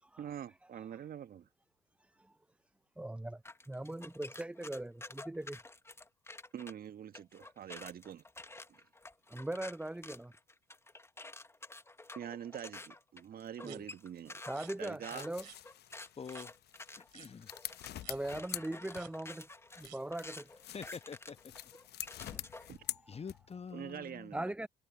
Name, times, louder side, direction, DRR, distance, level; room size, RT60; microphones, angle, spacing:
voice 1, 0.2-1.5 6.5-8.2 8.7-8.8 12.1-14.4 14.8-15.3 22.7-22.8 23.7-24.5, right 9 dB, 45° right, 1.5 m, -45 dB
voice 2, 3.0-5.6 9.3-10.3 13.6-13.8 14.5-15.5 18.0-19.5 19.8-20.5 22.2-22.5 22.9-23.1 24.3-24.7, right 1 dB, 5° right, 0.7 m, -40 dB
sound 1, 3.5-6.7 7.1-22.8, left 2 dB, 10° left, 1.4 m, -50 dB
sound 2, 13.6-13.8 14.5-14.7 15.4-15.6 16.3-16.5 17.1-17.3 18.0-18.2 18.9-19.1 19.8-20.0, right 14 dB, 85° right, 3.3 m, -54 dB
sound 3, 14.8-19.4 19.7-23.7, left 13 dB, 50° left, 1.0 m, -46 dB
voice 3, 16.2-16.5 17.0-17.5 20.7-21.5 23.1-24.3, left 6 dB, 30° left, 1.4 m, -46 dB
hypercardioid pair, 60°, 21 cm